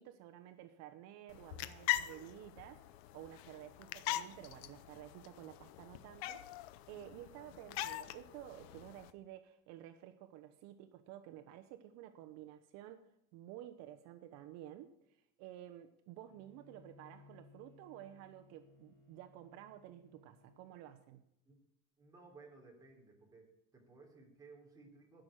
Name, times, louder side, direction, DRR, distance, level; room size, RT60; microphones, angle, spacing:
voice 1, 0.0-21.3, right 12 dB, 60° right, 10 dB, 0.9 m, -52 dB
sound 1, 1.3-9.1, left 14 dB, 90° left, 0.9 m, -42 dB
Bowed string instrument, 16.2-20.8, left 4 dB, 10° left, 4.3 m, -63 dB
voice 2, 22.0-23.5 23.7-25.2, right 3 dB, 10° right, -1 dB, 3.4 m, -58 dB
12.5 x 6.4 x 8.9 m, 0.82 s
cardioid pair, 155°, 30 cm